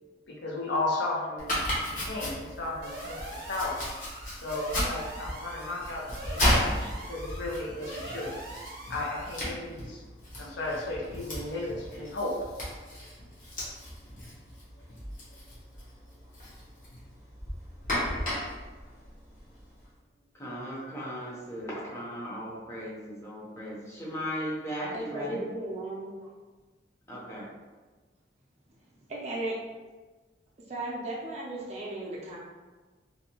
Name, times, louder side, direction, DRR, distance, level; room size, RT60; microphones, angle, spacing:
voice 1, 0.3-1.6 2.0-3.8 4.3-8.3 8.9-10.0 10.4-12.4, left 2 dB, 75° left, -2 dB, 0.6 m, -34 dB
Domestic sounds home sounds, 1.4-19.8, left 1 dB, 45° left, 0.8 m, -35 dB
sound 1, 2.8-9.5, right 1 dB, 55° right, 0.8 m, -43 dB
voice 2, 20.3-25.4 27.1-27.5, equal, 15° left, -6 dB, 0.6 m, -37 dB
voice 3, 24.9-26.3 29.1-29.5 30.7-32.4, right 2 dB, 35° right, -5 dB, 0.4 m, -35 dB
2.6 x 2.1 x 2.8 m, 1.3 s
head